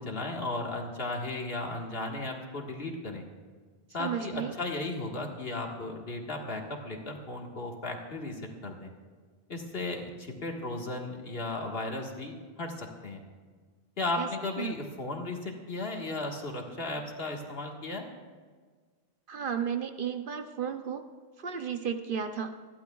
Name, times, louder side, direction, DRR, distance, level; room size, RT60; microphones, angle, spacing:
voice 1, 0.0-3.2 3.9-8.9 9.5-13.2 14.0-18.1, left 2 dB, 60° left, 1 dB, 1.8 m, -35 dB
voice 2, 4.0-4.5 14.2-14.3 14.6-14.8 19.3-21.1 21.4-22.5, right 7 dB, 55° right, 7 dB, 0.8 m, -33 dB
28.0 x 11.5 x 2.3 m, 1.5 s
omnidirectional pair, 1.1 m